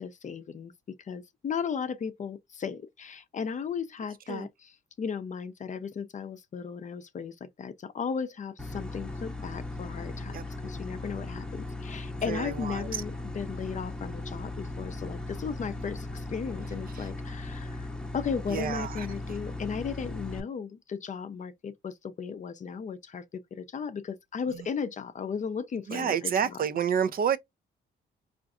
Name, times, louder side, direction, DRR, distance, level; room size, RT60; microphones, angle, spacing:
voice 1, 0.0-17.9 18.1-26.6, left 6 dB, 40° left, 0.6 m, -36 dB
sound 1, 8.6-20.4, left 2 dB, 5° left, 0.8 m, -38 dB
voice 2, 12.3-13.0 17.0-17.1 18.5-19.1 25.9-27.4, right 8 dB, 45° right, 0.5 m, -29 dB
4.6 x 2.5 x 2.4 m
cardioid pair, 90°, 20 cm